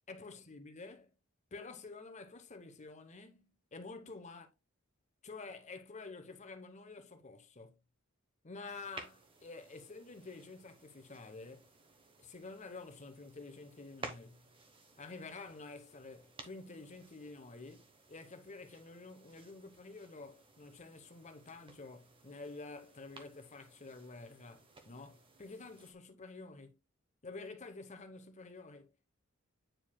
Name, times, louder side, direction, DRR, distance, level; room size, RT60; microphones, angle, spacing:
voice 1, 0.1-1.1 1.5-4.5 5.2-7.8 8.4-11.7 12.2-14.6 15.0-26.8 27.2-28.9, left 3 dB, 35° left, 0.9 m, -49 dB
sound 1, 8.6-25.9, right 3 dB, 25° right, 1.0 m, -56 dB
9.0 x 4.7 x 2.2 m
head